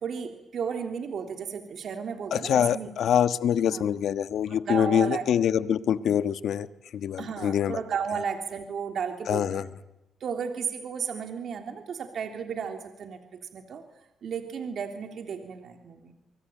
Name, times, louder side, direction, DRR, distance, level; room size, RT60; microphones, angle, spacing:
voice 1, 0.0-2.9 3.6-3.8 4.5-5.2 7.2-9.7 10.2-13.8 14.2-16.1, right 6 dB, 60° right, 5 dB, 3.3 m, -34 dB
voice 2, 2.3-6.7 6.9-7.8 9.3-9.6, left 9 dB, 70° left, 13 dB, 1.4 m, -25 dB
24.5 x 24.0 x 9.0 m, 0.89 s
cardioid pair, 90°, 0 cm